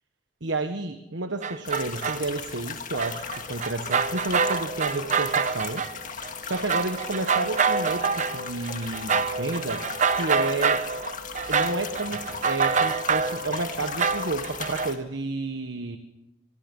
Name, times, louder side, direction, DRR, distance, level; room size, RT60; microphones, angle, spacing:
voice 1, 0.4-5.9 6.4-10.9 11.5-16.0, right 3 dB, 70° right, 8 dB, 1.4 m, -31 dB
sound 1, 1.4-2.3 3.0-5.9 6.2-14.9, right 5 dB, 40° right, 0.9 m, -27 dB
sound 2, 1.6-15.0, left 6 dB, 40° left, 2.0 m, -37 dB
25.0 x 23.5 x 5.5 m, 0.90 s
head